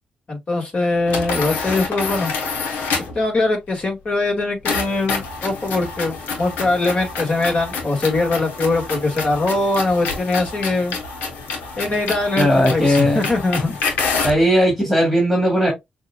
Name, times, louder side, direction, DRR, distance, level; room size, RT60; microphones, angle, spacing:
voice 1, 0.3-2.3 3.2-11.0 11.8-13.8, left 2 dB, 45° left, 2.0 m, -21 dB
sound 1, 1.1-3.2 4.6-14.4, left 4 dB, 85° left, 1.0 m, -27 dB
voice 2, 12.3-13.2 14.2-15.7, equal, 10° left, 2.1 m, -17 dB
6.2 x 2.5 x 2.2 m
cardioid pair, 65°, 3 cm